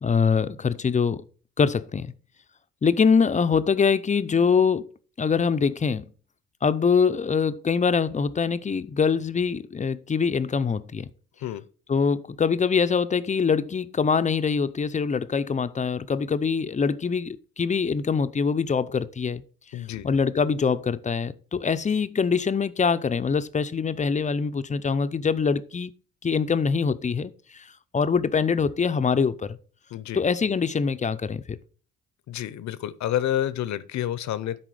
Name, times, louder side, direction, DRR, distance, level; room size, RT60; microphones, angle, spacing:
voice 1, 0.0-1.2 1.6-2.1 2.8-4.9 5.2-6.1 6.6-11.1 11.9-19.4 20.0-25.9 26.2-27.7 27.9-29.6 30.1-31.6, left 5 dB, 25° left, 0.5 m, -24 dB
voice 2, 19.7-20.1 29.9-30.2 32.3-34.6, left 11 dB, 65° left, 0.7 m, -29 dB
10.0 x 4.1 x 4.9 m
cardioid pair, 90°, 30 cm